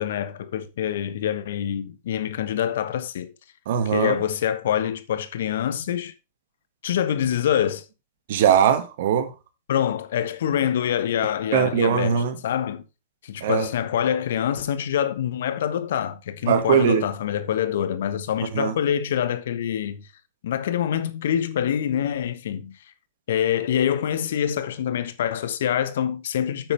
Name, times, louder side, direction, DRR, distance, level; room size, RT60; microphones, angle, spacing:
voice 1, 0.0-3.3 3.8-6.1 6.8-7.8 9.7-12.8 13.2-20.1 20.4-22.8 23.3-26.7, left 9 dB, 65° left, 1.2 m, -25 dB
voice 2, 3.7-4.2 8.3-9.3 11.5-12.3 13.4-13.7 16.5-17.0 18.5-18.7, right 8 dB, 60° right, 1.9 m, -20 dB
9.7 x 8.5 x 3.4 m
hypercardioid pair, 105°, 0 cm